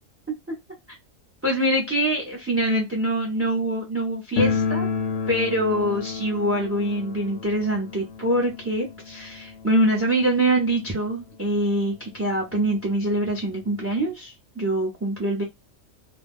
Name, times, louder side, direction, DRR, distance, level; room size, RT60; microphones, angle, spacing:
voice 1, 1.4-4.9 5.3-15.4, right 1 dB, 15° right, 0 dB, 0.5 m, -24 dB
sound 1, 4.4-11.1 11.3-11.4 11.7-11.8 12.5-12.6 12.9-14.1, left 5 dB, 70° left, 0.9 m, -30 dB
2.5 x 2.2 x 3.4 m, 0.20 s
omnidirectional pair, 1.4 m